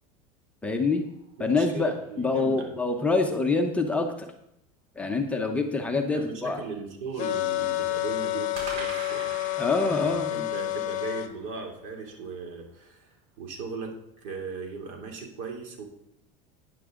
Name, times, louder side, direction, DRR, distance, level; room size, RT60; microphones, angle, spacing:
voice 1, 0.6-1.0 1.4-4.3 5.0-6.6 9.6-10.3, left 3 dB, 5° left, 3 dB, 0.9 m, -26 dB
sound 1, 0.8-2.7 8.5-12.8, right 3 dB, 90° right, 5.1 m, -44 dB
voice 2, 1.4-2.7 6.1-9.3 9.8-13.9 14.2-15.9, right 4 dB, 65° right, 1 dB, 2.9 m, -38 dB
sound 2, 7.2-11.3, left 17 dB, 45° left, 0.9 m, -29 dB
12.0 x 9.9 x 3.8 m, 0.76 s
supercardioid pair, 150°, 17 cm